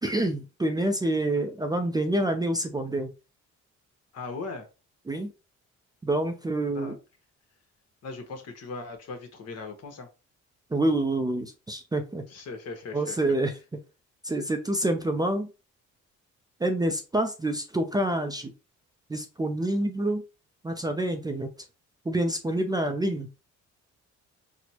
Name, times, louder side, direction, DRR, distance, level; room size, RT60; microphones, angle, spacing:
voice 1, 0.0-3.1 5.1-5.3 6.0-7.0 10.7-12.2 12.9-13.5 14.2-15.5 16.6-18.5 19.1-20.2 20.6-21.5 22.1-23.3, right 1 dB, 15° right, 5 dB, 0.4 m, -27 dB
voice 2, 4.1-4.7 6.7-6.9 8.0-10.1 12.3-13.2, left 3 dB, 55° left, 5 dB, 1.0 m, -38 dB
4.1 x 2.1 x 2.8 m, 0.30 s
cardioid pair, 90°, 30 cm